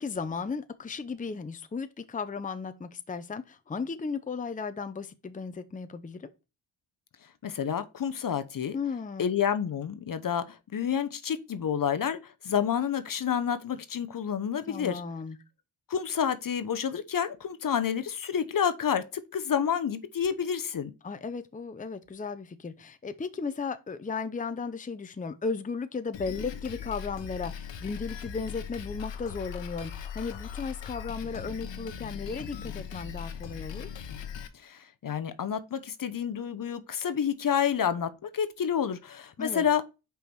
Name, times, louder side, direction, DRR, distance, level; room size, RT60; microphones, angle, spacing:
voice 1, 0.0-6.3 8.7-9.3 14.7-15.4 21.0-33.9 39.4-39.7, left 5 dB, 20° left, 0.7 m, -35 dB
voice 2, 7.4-8.8 9.2-15.0 15.9-20.9 34.6-39.8, left 8 dB, 45° left, 0.8 m, -29 dB
Drum kit, 26.1-34.5, left 8 dB, 75° left, 1.1 m, -39 dB
5.3 x 4.6 x 6.0 m
cardioid pair, 65°, 45 cm